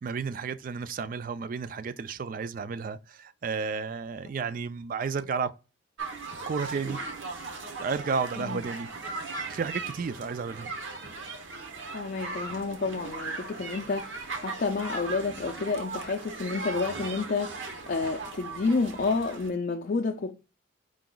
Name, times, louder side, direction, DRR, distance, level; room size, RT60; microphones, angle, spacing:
voice 1, 0.0-5.5 6.5-7.1 7.8-10.7, right 5 dB, 45° right, 0.3 m, -32 dB
sound 1, 6.0-19.5, right 3 dB, 70° right, 0.9 m, -38 dB
voice 2, 11.9-20.3, left 4 dB, 50° left, 0.4 m, -30 dB
4.8 x 2.3 x 3.7 m
head